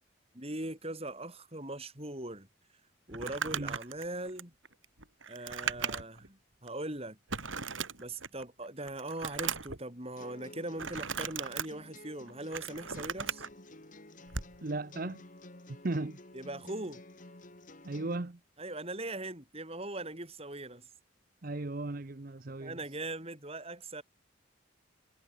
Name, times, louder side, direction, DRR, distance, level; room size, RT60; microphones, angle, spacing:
voice 1, 0.3-2.5 3.1-4.5 5.3-7.2 8.0-13.4 16.3-17.0 18.6-20.9 22.6-24.0, right 2 dB, 30° right, 5.5 m, -40 dB
Crumpling crinkling, 3.1-6.3 6.7-6.8 7.3-8.4 8.8-9.8 10.8-11.7 12.3-13.5 14.3-14.6, right 6 dB, 75° right, 3.8 m, -37 dB
sound 1, 10.2-18.2, left 2 dB, 40° left, 2.2 m, -52 dB
voice 2, 14.6-15.2 15.8-16.2 17.8-18.4 21.4-22.8, right 2 dB, 45° right, 0.8 m, -36 dB
head